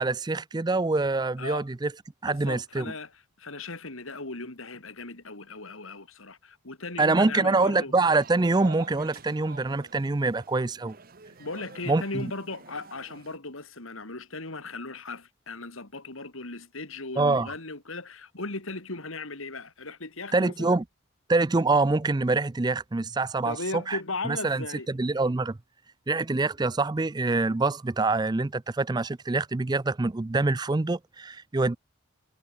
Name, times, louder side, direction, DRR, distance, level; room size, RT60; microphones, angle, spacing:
voice 1, 0.0-1.9 2.2-2.9 7.0-11.0 11.9-12.3 17.2-17.5 20.3-20.8 21.3-23.6 23.9-24.0 24.3-25.6 26.1-31.8, right 3 dB, 20° right, 0.4 m, -25 dB
voice 2, 2.2-7.9 11.4-20.8 23.4-24.9, left 3 dB, 70° left, 3.2 m, -37 dB
sound 1, 8.0-13.4, right 4 dB, 45° right, 1.1 m, -48 dB
head